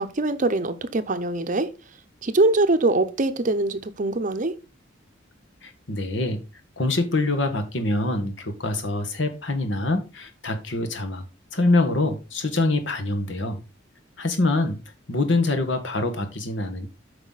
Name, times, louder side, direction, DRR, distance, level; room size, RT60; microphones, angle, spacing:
voice 1, 0.0-1.7 2.2-4.6, right 2 dB, 40° right, 0.7 m, -23 dB
voice 2, 5.6-6.4 6.8-11.2 11.5-13.6 14.2-14.8 15.1-16.9, left 2 dB, 65° left, 1.6 m, -25 dB
8.2 x 5.6 x 4.0 m
head